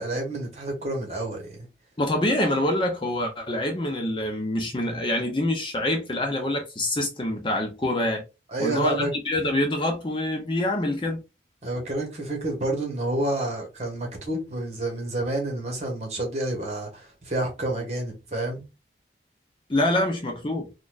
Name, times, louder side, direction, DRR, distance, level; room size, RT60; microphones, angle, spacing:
voice 1, 0.0-1.6 8.5-9.1 11.6-18.6, right 1 dB, 40° right, 1.2 m, -29 dB
voice 2, 2.0-8.2 8.6-11.2 19.7-20.7, left 1 dB, 25° left, 0.5 m, -26 dB
4.1 x 2.4 x 2.4 m
head